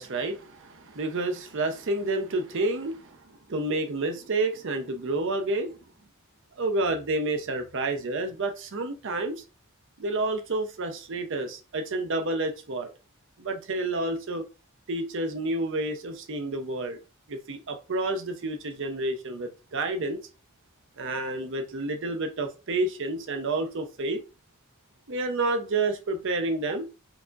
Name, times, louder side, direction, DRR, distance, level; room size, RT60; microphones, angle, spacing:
voice 1, 0.0-3.2 3.5-5.8 6.6-9.4 10.0-12.9 13.4-14.5 14.9-17.0 17.3-20.2 21.0-24.2 25.1-26.9, right 2 dB, 60° right, 0.7 m, -29 dB
4.6 x 2.8 x 2.4 m
head